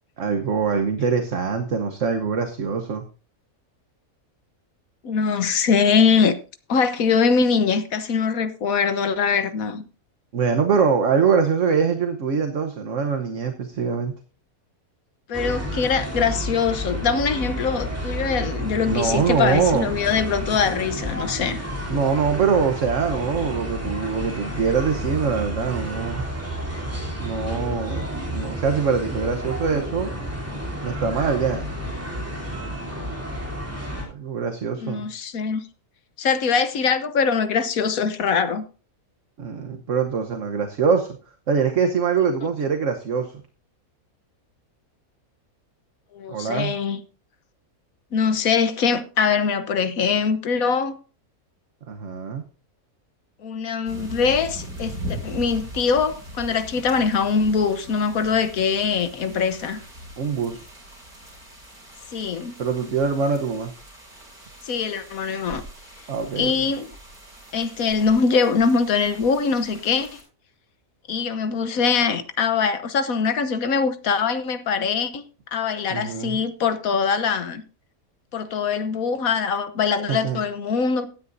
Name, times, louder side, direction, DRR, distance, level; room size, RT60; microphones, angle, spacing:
voice 1, 0.2-3.0 10.3-14.1 18.9-19.9 21.9-26.2 27.2-28.0 28.3-30.1 30.8-31.7 34.0-35.1 39.4-41.2 41.5-43.4 46.3-46.7 51.9-52.4 60.2-60.7 62.6-63.7 66.1-66.7 75.9-76.4 80.1-80.4, right 6 dB, 55° right, 1.4 m, -23 dB
voice 2, 5.0-6.3 6.7-9.8 15.3-21.6 34.8-35.6 36.2-38.6 46.1-47.0 48.1-51.0 53.4-59.8 62.1-62.6 64.6-65.6 66.4-66.9 67.5-70.2 71.1-75.2 75.5-77.6 78.3-81.1, left 5 dB, 70° left, 1.4 m, -22 dB
sound 1, 15.3-34.0, equal, 10° right, 3.3 m, -31 dB
sound 2, 53.9-70.2, equal, 80° right, 7.6 m, -40 dB
16.5 x 9.6 x 2.6 m
omnidirectional pair, 1.6 m